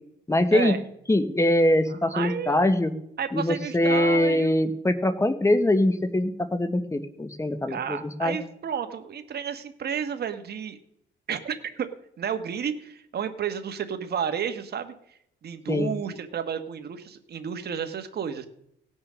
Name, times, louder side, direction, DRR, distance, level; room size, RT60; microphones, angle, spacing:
voice 1, 0.3-0.7 1.1-2.9 3.3-8.4 15.7-15.9, left 1 dB, 15° left, 11 dB, 1.3 m, -23 dB
voice 2, 2.1-2.6 3.2-4.6 7.7-10.8 11.3-11.9 12.2-14.9 15.4-18.5, right 7 dB, 55° right, 8 dB, 1.4 m, -31 dB
17.5 x 6.2 x 6.3 m, 0.74 s
cardioid pair, 90°, 20 cm